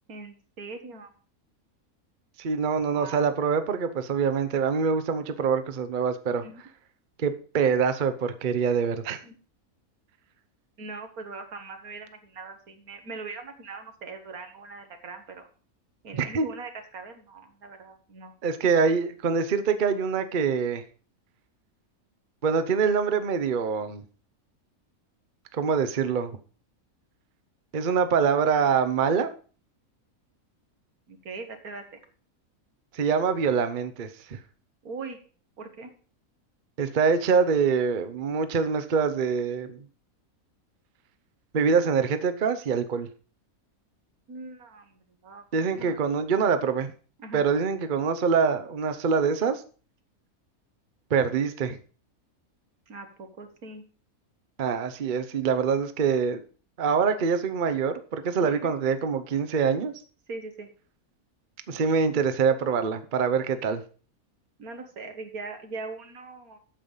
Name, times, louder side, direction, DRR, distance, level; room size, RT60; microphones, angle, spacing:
voice 1, 0.1-1.1 2.9-3.2 6.4-6.6 9.2-9.4 10.8-15.5 16.0-18.3 31.1-31.8 34.8-35.2 35.6-35.9 44.3-46.0 47.2-47.5 52.9-53.8 58.4-58.7 60.3-60.7 64.6-66.6, right 3 dB, 80° right, 5 dB, 2.0 m, -41 dB
voice 2, 2.4-6.4 7.2-9.2 16.1-16.5 18.4-20.8 22.4-24.0 25.5-26.4 27.7-29.3 32.9-34.4 36.8-39.8 41.5-43.1 45.5-46.9 47.3-49.6 51.1-51.8 54.6-56.4 56.8-59.9 61.7-63.8, right 6 dB, 40° right, 10 dB, 0.8 m, -25 dB
8.8 x 6.9 x 5.5 m, 0.40 s
omnidirectional pair, 1.5 m